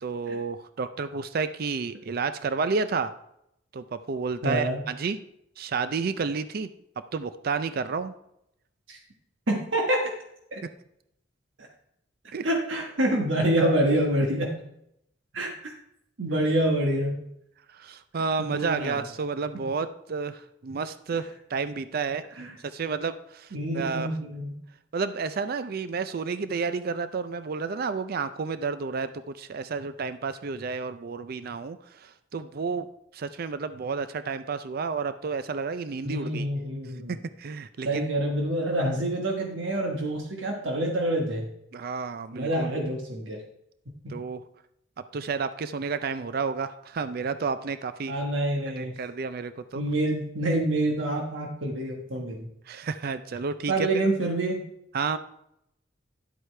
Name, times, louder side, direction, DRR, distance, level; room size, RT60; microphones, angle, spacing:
voice 1, 0.0-3.1 3.7-5.2 5.6-6.7 7.1-8.1 10.6-10.7 12.3-12.5 17.7-22.2 22.6-24.1 24.9-32.9 33.1-36.5 37.1-38.1 41.7-42.7 44.1-44.4 45.1-48.1 48.8-49.8 52.7-53.9 54.9-55.2, right 5 dB, 50° right, 12 dB, 0.4 m, -31 dB
voice 2, 4.4-4.8 8.9-9.0 9.5-10.1 10.5-10.6 12.4-14.5 15.3-15.7 16.2-17.2 18.4-19.0 22.4-22.5 23.5-24.5 36.0-37.2 37.8-41.5 42.3-43.4 44.0-44.1 48.1-49.0 49.7-52.5 53.7-54.6, right 1 dB, 80° right, 1 dB, 1.3 m, -27 dB
11.0 x 7.9 x 3.3 m, 0.78 s
head